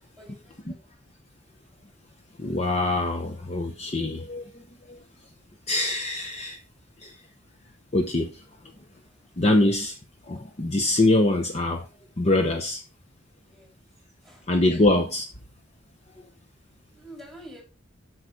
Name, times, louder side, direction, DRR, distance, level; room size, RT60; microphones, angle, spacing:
voice 1, 0.2-0.9 13.4-13.7 14.2-14.4 16.9-17.6, right 1 dB, ahead, 3.0 m, -47 dB
voice 2, 2.4-5.0 5.7-6.6 7.0-7.1 7.9-8.4 9.4-10.0 10.3-11.9 12.2-12.8 14.5-15.3, left 2 dB, 30° left, 0.8 m, -24 dB
8.3 x 6.3 x 4.6 m
head